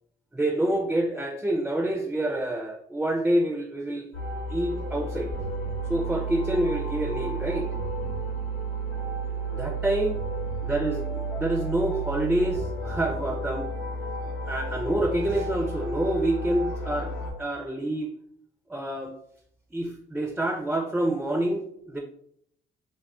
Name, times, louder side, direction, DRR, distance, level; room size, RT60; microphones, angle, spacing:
voice 1, 0.3-4.1 4.5-5.3 5.9-7.7 9.5-10.2 10.7-13.7 14.5-17.1 17.4-18.1 18.7-19.1 19.7-22.0, right 1 dB, 5° right, 1 dB, 0.3 m, -27 dB
sound 1, 4.1-17.3, right 2 dB, 85° left, 0.8 m, -32 dB
2.3 x 2.1 x 3.5 m, 0.70 s
cardioid pair, 90°, 20 cm